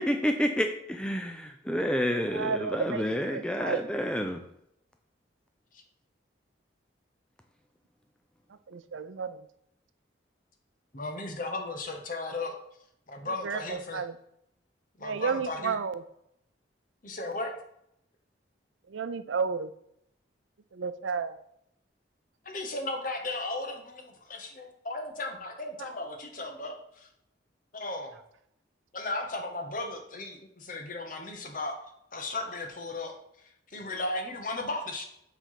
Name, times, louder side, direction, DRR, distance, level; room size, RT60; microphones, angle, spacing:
voice 1, 0.0-4.4, equal, 5° left, 5 dB, 0.4 m, -29 dB
voice 2, 2.0-3.8 8.7-9.5 13.2-14.1 15.0-16.0 18.9-19.7 20.7-21.4, right 5 dB, 90° right, 12 dB, 0.5 m, -32 dB
voice 3, 10.9-12.5 13.1-14.0 15.0-15.8 17.0-17.5 22.4-27.1 27.7-28.2 28.9-31.7 32.1-33.2 33.7-35.0, left 2 dB, 45° left, 4 dB, 1.1 m, -35 dB
7.4 x 3.4 x 5.7 m, 0.76 s
head